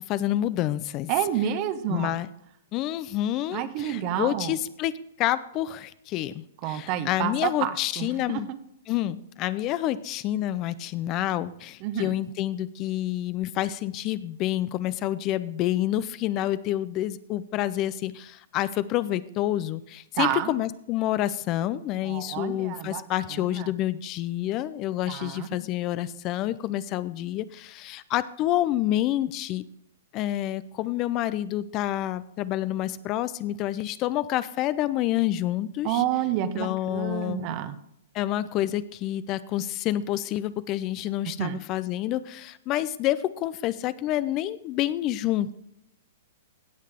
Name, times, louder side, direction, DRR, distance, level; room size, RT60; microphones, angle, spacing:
voice 1, 0.1-1.1 1.9-2.3 2.7-8.5 8.9-29.6 30.1-36.0 36.6-37.4 38.1-45.6, left 13 dB, 35° left, 16 dB, 0.5 m, -28 dB
voice 2, 1.1-2.1 3.5-4.6 6.6-8.6 11.8-12.1 20.1-20.5 22.0-23.0 23.3-23.7 25.1-25.6 35.8-37.8 41.4-41.6, right 10 dB, 40° right, 12 dB, 1.0 m, -29 dB
17.0 x 6.5 x 3.6 m, 0.76 s
hypercardioid pair, 120°, 0 cm